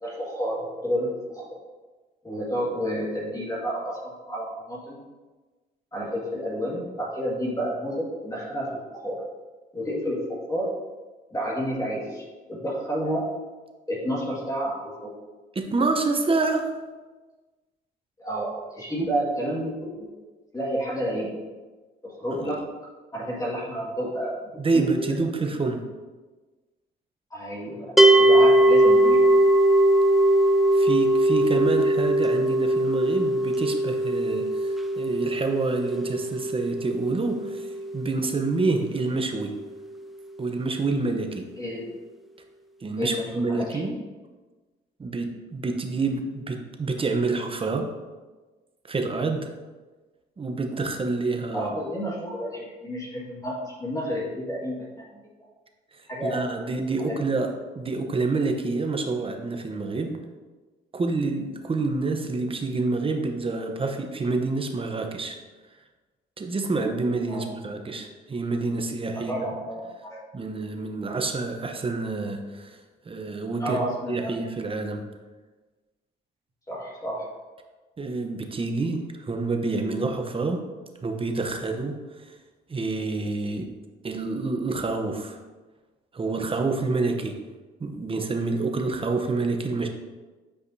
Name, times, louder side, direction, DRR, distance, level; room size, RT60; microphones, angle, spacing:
voice 1, 0.0-1.6 2.2-5.0 5.9-9.2 9.7-10.7 11.3-13.3 13.9-15.1 18.2-20.1 20.5-21.3 22.0-22.6 23.1-25.1 27.3-29.3 41.6-41.9 43.0-43.9 51.5-54.9 55.1-55.2 56.1-56.7 57.0-57.2 67.3-67.5 69.1-70.2 73.6-74.3 76.7-77.3, equal, 15° left, -5 dB, 1.9 m, -30 dB
voice 2, 15.5-16.7 19.0-19.1 22.3-22.4 24.6-25.8 30.7-37.7 37.9-39.5 40.4-41.4 42.8-43.9 45.0-47.9 48.9-49.5 50.4-51.7 56.2-57.5 57.8-60.2 60.9-65.4 66.4-69.5 70.3-72.8 73.1-75.0 78.0-80.6 81.0-82.0 82.3-82.4 82.7-83.7 84.0-85.4 86.1-87.4 87.8-89.9, right 3 dB, 30° right, 4 dB, 0.8 m, -27 dB
sound 1, 28.0-39.1, right 1 dB, ahead, 0.5 m, -21 dB
8.6 x 5.0 x 2.7 m, 1.3 s
cardioid pair, 90°, 20 cm